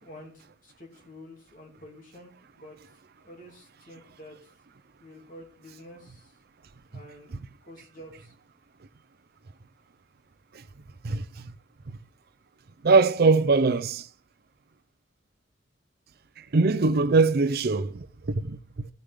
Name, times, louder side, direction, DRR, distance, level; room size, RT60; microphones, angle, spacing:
voice 1, 0.0-2.8 3.2-4.4 5.0-6.3 6.9-7.4 7.7-8.3, left 1 dB, 45° left, 2.9 m, -48 dB
voice 2, 11.0-11.5 11.9-12.0 12.8-14.1 16.5-18.9, right 3 dB, 55° right, 0.6 m, -22 dB
15.5 x 6.7 x 3.7 m
head